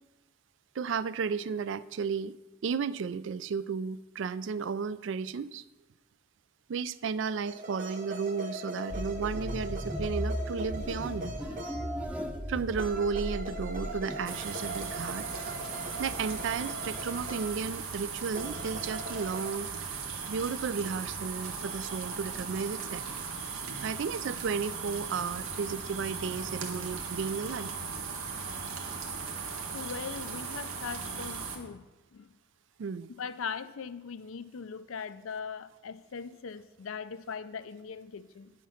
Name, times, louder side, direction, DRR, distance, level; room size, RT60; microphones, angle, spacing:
voice 1, 0.8-2.4 2.6-5.6 6.7-11.3 12.5-15.3 16.0-19.7 20.3-23.0 23.8-27.7 32.8-33.1, right 5 dB, 60° right, 17 dB, 0.4 m, -33 dB
sound 1, 7.4-12.1 12.8-17.6 18.3-19.5, right 1 dB, 40° right, 1.1 m, -41 dB
sound 2, 8.9-14.3, equal, 5° right, 0.7 m, -36 dB
sound 3, 14.2-31.6, right 5 dB, 90° right, 1.4 m, -38 dB
voice 2, 29.7-31.8 32.1-32.3 33.2-38.5, left 6 dB, 80° left, 14 dB, 0.5 m, -40 dB
9.2 x 7.2 x 5.8 m, 1.1 s
head